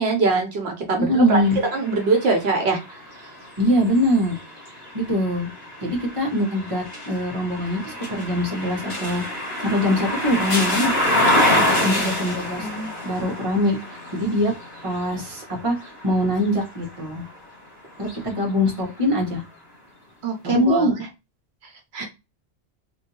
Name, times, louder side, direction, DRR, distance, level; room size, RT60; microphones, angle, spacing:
voice 1, 0.0-1.4 1.7-2.8 11.6-12.0 12.6-12.9 20.2-20.9 21.6-22.0, right 3 dB, 75° right, 2 dB, 1.0 m, -23 dB
voice 2, 1.0-1.6 3.6-4.4 4.9-5.5 5.8-9.2 9.6-10.9 11.8-12.7 13.0-14.5 14.8-17.2 18.0-19.4 20.4-20.9, equal, 30° right, -1 dB, 1.1 m, -23 dB
sound 1, 1.4-17.4 17.9-19.1, left 1 dB, 30° left, 1.4 m, -27 dB
3.2 x 2.6 x 2.7 m, 0.26 s
omnidirectional pair, 1.1 m